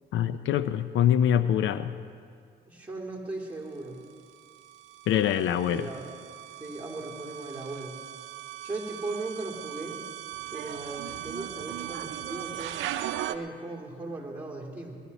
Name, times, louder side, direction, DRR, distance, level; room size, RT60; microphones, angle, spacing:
voice 1, 0.1-2.0 5.1-5.9, left 10 dB, 75° left, 13 dB, 0.5 m, -24 dB
voice 2, 2.7-4.0 5.6-6.1 6.5-8.0 8.6-10.0 10.5-12.8 13.3-15.0, right 2 dB, 10° right, -2 dB, 2.6 m, -37 dB
sound 1, 4.4-13.4, right 13 dB, 85° right, 0.6 m, -38 dB
18.5 x 12.0 x 4.1 m, 2.2 s
cardioid pair, 90°, 20 cm